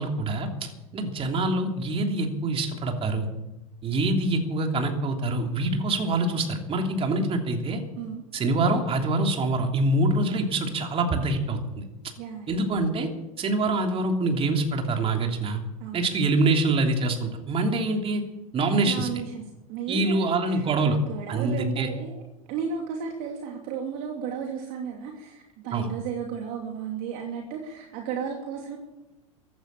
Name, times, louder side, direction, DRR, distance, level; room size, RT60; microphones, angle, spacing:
voice 1, 0.0-3.3 3.8-7.8 8.3-11.8 12.5-13.1 13.4-15.6 15.9-18.2 18.5-19.1 19.9-21.0 21.3-21.9 25.7-25.9, right 2 dB, 30° right, 3 dB, 3.3 m, -25 dB
voice 2, 12.2-12.6 15.8-16.3 18.8-19.4 19.7-22.2 22.5-28.8, right 6 dB, 55° right, 2 dB, 2.7 m, -34 dB
15.5 x 11.5 x 7.6 m, 0.96 s
hypercardioid pair, 90°, 18 cm